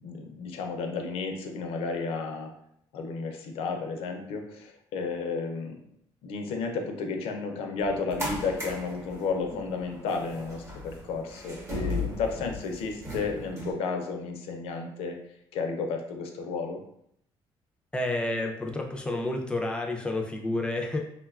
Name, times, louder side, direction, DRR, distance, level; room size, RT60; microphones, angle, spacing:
voice 1, 0.0-2.5 2.9-5.8 6.2-15.2 15.5-16.8, left 4 dB, 85° left, 3 dB, 0.5 m, -32 dB
sound 1, 7.8-13.7, left 2 dB, 30° right, 0.8 m, -37 dB
voice 2, 17.9-21.0, left 2 dB, 10° left, 2 dB, 0.4 m, -30 dB
3.6 x 2.2 x 2.3 m, 0.72 s
cardioid pair, 135°, 10 cm